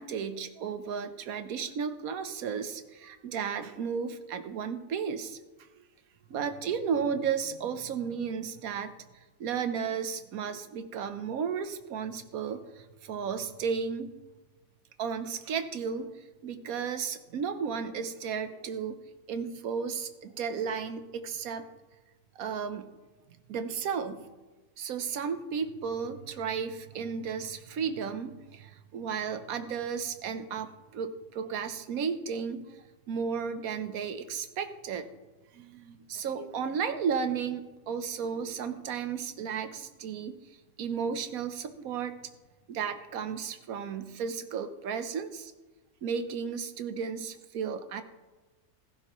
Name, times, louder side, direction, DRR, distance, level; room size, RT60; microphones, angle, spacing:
voice 1, 0.0-5.4 6.3-8.9 9.4-14.1 15.0-16.1 16.4-19.0 19.3-21.7 22.4-22.9 23.5-24.2 24.8-35.1 35.5-40.3 40.8-42.1 42.7-45.5 46.0-48.0, right 6 dB, 65° right, 10 dB, 1.3 m, -34 dB
16.5 x 14.0 x 3.1 m, 1.2 s
omnidirectional pair, 1.6 m